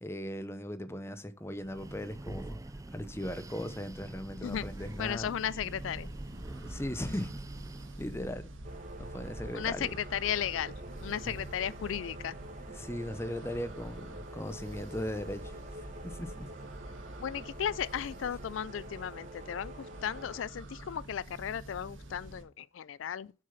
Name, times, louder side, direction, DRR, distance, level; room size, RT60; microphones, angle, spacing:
voice 1, 0.0-2.6 2.9-5.4 6.6-7.4 8.0-8.5 9.0-9.9 11.2-11.4 12.6-15.5 16.0-16.5, left 1 dB, 15° left, 0.8 m, -38 dB
Breathing, 1.5-8.1, right 2 dB, 15° right, 0.4 m, -45 dB
sound 1, 4.4-22.4, right 1 dB, 80° right, 1.7 m, -46 dB
voice 2, 5.0-6.1 9.5-10.7 11.0-12.4 17.2-23.3, left 9 dB, 80° left, 0.4 m, -35 dB
sound 2, 8.6-20.4, right 1 dB, 40° right, 1.7 m, -48 dB
7.5 x 6.4 x 5.8 m
head